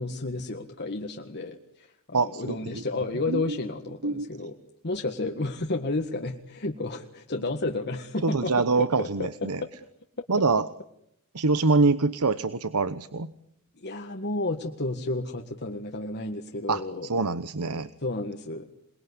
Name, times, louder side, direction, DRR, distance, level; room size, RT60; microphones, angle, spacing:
voice 1, 0.0-4.6 4.8-8.5 8.8-9.7 13.8-17.1 18.0-18.7, left 2 dB, 50° left, 4 dB, 1.8 m, -32 dB
voice 2, 2.1-2.8 3.3-3.6 4.0-4.3 8.2-9.6 10.3-10.7 11.3-13.3 16.7-17.9, right 3 dB, 90° right, 14 dB, 1.0 m, -25 dB
28.0 x 21.5 x 9.9 m, 0.80 s
head